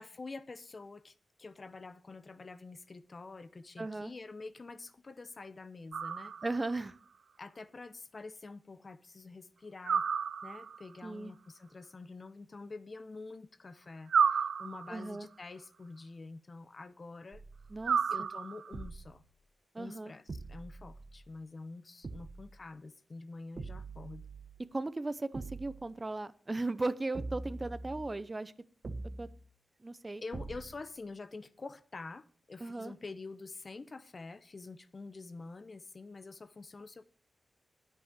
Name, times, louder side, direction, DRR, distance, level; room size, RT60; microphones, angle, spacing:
voice 1, 0.0-6.3 7.4-10.1 10.4-17.4 18.1-19.2 19.8-20.2 20.5-24.2 30.2-37.1, left 3 dB, 45° left, 0.9 m, -47 dB
voice 2, 3.8-4.1 6.4-6.9 11.0-11.3 14.9-15.3 17.7-18.3 19.7-20.1 24.7-28.5 29.2-29.3 29.8-30.2 32.6-32.9, right 2 dB, 30° right, 0.8 m, -37 dB
sound 1, 5.9-6.8 9.8-10.9 14.1-15.2 17.8-18.8, right 6 dB, 75° right, 0.6 m, -31 dB
sound 2, 17.3-18.1 18.7-19.3 20.3-21.3 22.0-22.6 23.6-24.6 25.3-25.9 27.1-28.3 28.8-29.5 30.3-30.9, right 3 dB, 50° right, 1.3 m, -44 dB
10.0 x 8.5 x 6.7 m
cardioid pair, 55°, 0 cm